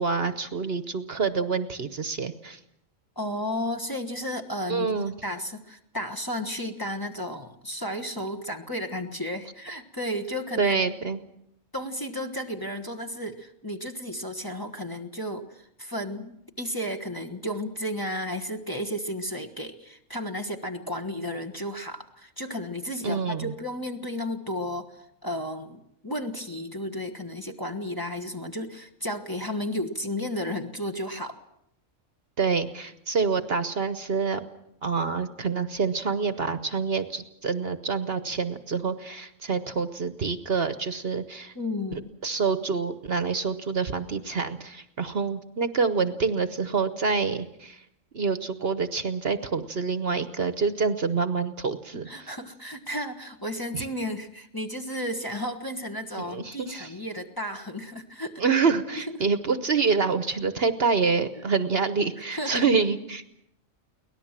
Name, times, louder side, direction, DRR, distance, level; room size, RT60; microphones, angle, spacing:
voice 1, 0.0-2.6 4.7-5.1 10.6-11.2 23.0-23.5 32.4-34.4 34.8-41.5 41.9-47.8 48.1-52.3 53.7-53.8 56.2-56.9 58.4-63.2, right 5 dB, 50° right, 11 dB, 1.2 m, -27 dB
voice 2, 3.1-10.8 11.7-31.4 41.5-42.1 52.1-58.3 61.4-61.5 62.3-62.6, left 1 dB, 15° left, 2 dB, 1.4 m, -33 dB
24.0 x 18.5 x 7.5 m, 0.77 s
omnidirectional pair, 1.4 m